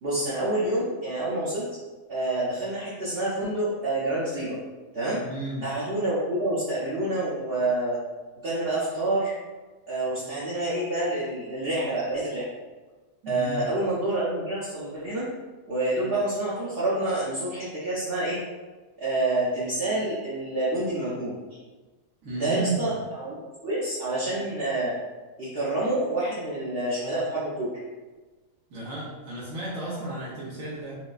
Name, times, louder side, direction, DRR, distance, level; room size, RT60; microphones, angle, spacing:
voice 1, 0.0-1.6 2.1-4.6 4.9-5.2 5.6-8.0 8.4-9.3 9.9-12.4 13.3-15.3 15.7-18.4 19.0-21.3 22.3-24.9 25.4-27.7, right 2 dB, 50° right, -9 dB, 0.8 m, -27 dB
voice 2, 5.2-5.7 13.2-13.7 22.2-23.0 28.7-30.9, right 2 dB, 75° right, -8 dB, 1.1 m, -33 dB
4.6 x 2.1 x 2.5 m, 1.3 s
omnidirectional pair, 1.4 m